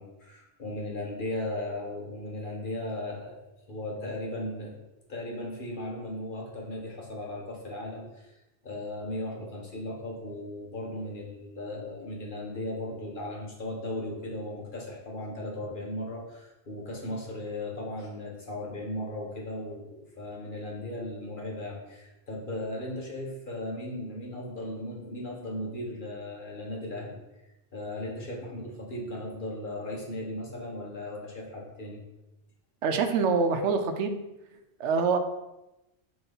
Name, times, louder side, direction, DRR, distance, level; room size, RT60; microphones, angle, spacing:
voice 1, 0.0-3.4 3.7-4.7 5.1-8.3 8.6-27.2 27.7-32.0, left 1 dB, 45° left, -2 dB, 1.5 m, -37 dB
voice 2, 32.8-34.2 34.8-35.2, right 5 dB, 75° right, 7 dB, 1.0 m, -25 dB
5.8 x 3.2 x 5.3 m, 0.96 s
omnidirectional pair, 1.2 m